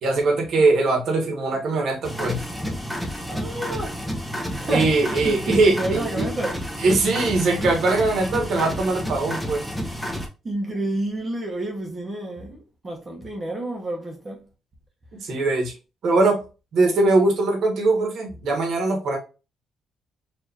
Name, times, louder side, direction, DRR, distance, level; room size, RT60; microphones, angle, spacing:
voice 1, 0.0-2.5 4.7-6.3 6.8-9.7 15.2-15.7 16.0-16.4 16.7-19.2, right 3 dB, 70° right, 1.5 m, -21 dB
sound 1, 2.0-10.3, equal, ahead, 1.0 m, -30 dB
voice 2, 3.3-4.0 4.5-6.5 10.4-14.4, right 1 dB, 30° right, 1.1 m, -29 dB
4.5 x 2.8 x 2.8 m
cardioid pair, 90°, 0 cm